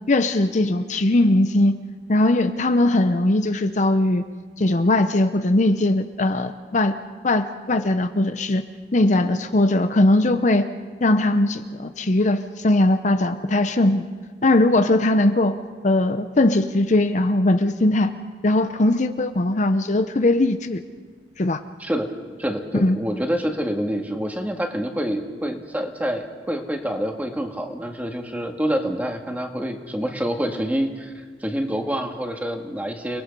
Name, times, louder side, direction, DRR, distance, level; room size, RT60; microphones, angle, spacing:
voice 1, 0.1-1.7 2.1-4.2 4.6-6.9 7.2-8.6 8.9-10.7 11.0-14.1 14.4-15.6 15.8-18.1 18.4-20.8 21.4-21.6 22.7-23.0, left 2 dB, 45° left, 9 dB, 0.7 m, -19 dB
voice 2, 21.8-22.1 22.4-33.2, equal, 10° right, 3 dB, 1.8 m, -27 dB
30.0 x 20.0 x 5.4 m, 1.5 s
head